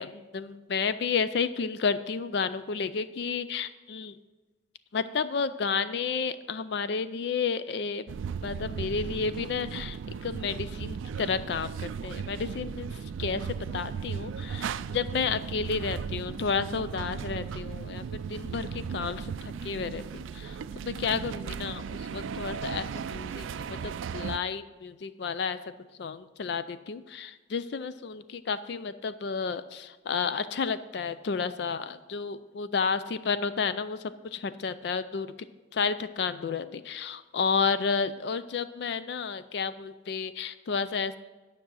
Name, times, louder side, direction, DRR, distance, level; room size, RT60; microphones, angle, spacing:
voice 1, 0.0-4.1 4.9-8.0 8.4-12.9 13.2-20.6 20.8-25.6 26.0-35.3 35.7-41.2, left 5 dB, 55° left, 13 dB, 0.4 m, -31 dB
sound 1, 8.1-24.4, right 6 dB, 80° right, 0.3 m, -36 dB
9.8 x 6.0 x 6.2 m, 1.3 s
head